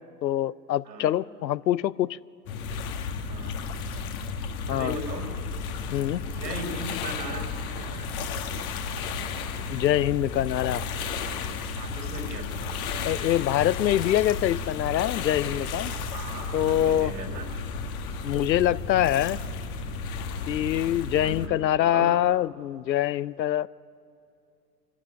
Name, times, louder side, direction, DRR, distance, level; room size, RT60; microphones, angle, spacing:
voice 1, 0.0-2.2 4.7-5.0 5.9-6.2 9.7-10.8 13.0-15.9 16.5-17.1 18.2-19.4 20.5-23.7, left 12 dB, 85° left, 0.6 m, -24 dB
sound 1, 2.5-21.5, left 4 dB, 55° left, 1.8 m, -33 dB
voice 2, 3.2-3.6 4.7-5.3 6.2-8.1 11.8-12.8 16.1-17.5 21.2-21.6 21.9-22.1, right 1 dB, 80° right, 4.8 m, -38 dB
25.0 x 12.5 x 10.0 m
hypercardioid pair, 100°, 50 cm